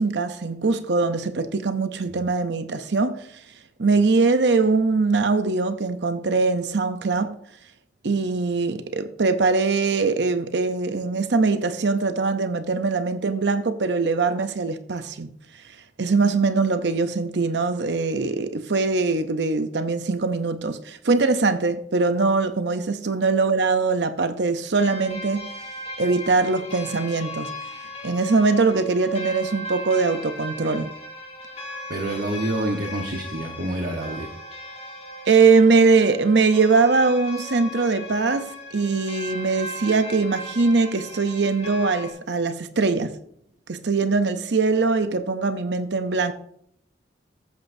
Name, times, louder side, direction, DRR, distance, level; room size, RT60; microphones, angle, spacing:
voice 1, 0.0-3.3 3.8-7.3 8.0-15.3 16.0-25.5 26.0-27.5 28.0-30.9 35.3-43.1 43.7-46.3, right 4 dB, 75° right, 0.7 m, -22 dB
sound 1, 24.8-42.1, left 1 dB, 40° left, 2.6 m, -37 dB
voice 2, 31.9-34.3, right 1 dB, 60° right, 1.2 m, -28 dB
14.5 x 8.5 x 2.7 m
head